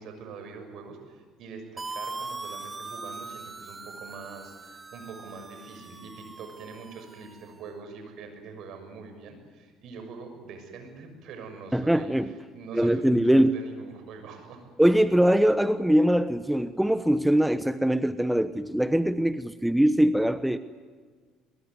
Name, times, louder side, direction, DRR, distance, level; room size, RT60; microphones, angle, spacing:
voice 1, 0.0-14.6, right 4 dB, 65° right, 6 dB, 6.4 m, -44 dB
sound 1, 1.8-7.5, right 3 dB, 25° right, 1.6 m, -41 dB
voice 2, 11.7-12.3 12.7-13.5 14.8-20.6, equal, 5° right, 13 dB, 1.0 m, -22 dB
22.5 x 22.5 x 9.6 m, 1.5 s
hypercardioid pair, 70°, 0 cm